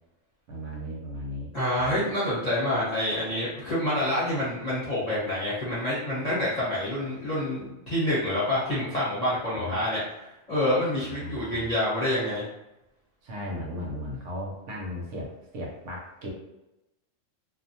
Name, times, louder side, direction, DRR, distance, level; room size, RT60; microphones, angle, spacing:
voice 1, 0.5-1.5 1.8-2.0 9.5-9.8 11.2-11.7 13.2-16.3, equal, 70° right, -1 dB, 0.9 m, -36 dB
voice 2, 1.5-10.0 10.5-12.4, left 1 dB, 35° left, -10 dB, 0.8 m, -27 dB
2.4 x 2.1 x 2.7 m, 0.93 s
omnidirectional pair, 1.4 m